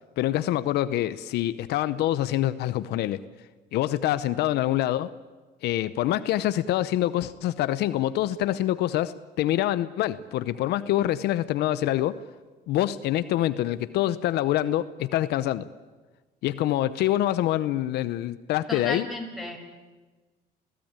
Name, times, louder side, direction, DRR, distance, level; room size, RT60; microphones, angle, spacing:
voice 1, 0.2-3.2 3.7-5.1 5.6-12.2 12.7-15.7 16.4-19.1, left 13 dB, 80° left, 14 dB, 0.8 m, -25 dB
voice 2, 18.7-19.6, left 2 dB, ahead, 4 dB, 5.6 m, -33 dB
29.5 x 16.5 x 8.9 m, 1.3 s
cardioid pair, 110°, 17 cm